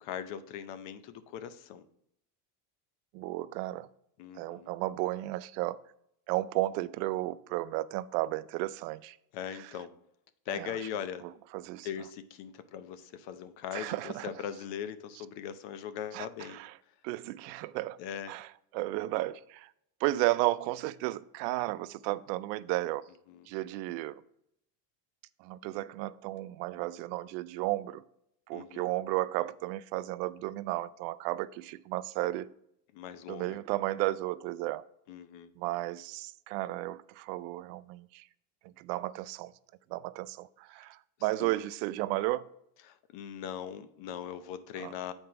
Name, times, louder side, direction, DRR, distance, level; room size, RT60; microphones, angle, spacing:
voice 1, 0.0-1.9 4.2-4.7 9.3-9.9 10.5-11.2 11.8-16.6 18.0-18.3 23.3-23.5 28.5-28.9 32.9-33.6 35.1-35.5 41.4-41.5 42.8-45.1, left 8 dB, 60° left, 0.7 m, -40 dB
voice 2, 3.1-3.9 4.4-5.8 6.3-9.2 10.6-10.7 11.5-11.9 13.7-14.3 16.1-16.7 17.0-18.0 18.3-18.5 18.7-19.7 20.0-23.0 23.5-24.2 25.4-28.0 28.5-32.5 33.3-34.9 35.6-38.2 38.8-39.5 39.9-42.5 44.8-44.9, right 17 dB, 90° right, 0.6 m, -33 dB
7.8 x 4.4 x 4.7 m
cardioid pair, 135°, 50 cm